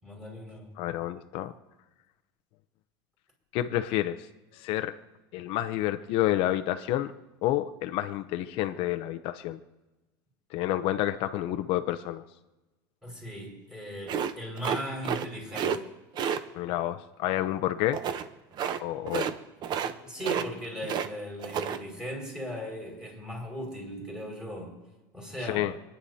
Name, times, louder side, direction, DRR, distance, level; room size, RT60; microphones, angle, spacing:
voice 1, 0.0-0.8 13.0-15.9 19.8-24.7 25.1-25.7, equal, 5° right, -2 dB, 5.5 m, -38 dB
voice 2, 0.8-1.5 3.5-4.3 4.5-5.0 5.3-7.1 7.4-9.6 10.5-12.2 16.5-18.0 18.8-19.3 25.4-25.7, left 14 dB, 60° left, 9 dB, 0.7 m, -29 dB
sound 1, 14.1-15.3 15.5-15.8 16.2-16.4 17.9-18.3 18.6-18.8 19.1-19.4 19.6-19.9 20.2-21.1 21.4-21.8, right 8 dB, 45° right, 0.8 m, -30 dB
29.0 x 9.9 x 2.8 m, 1.1 s
supercardioid pair, 130°, 10 cm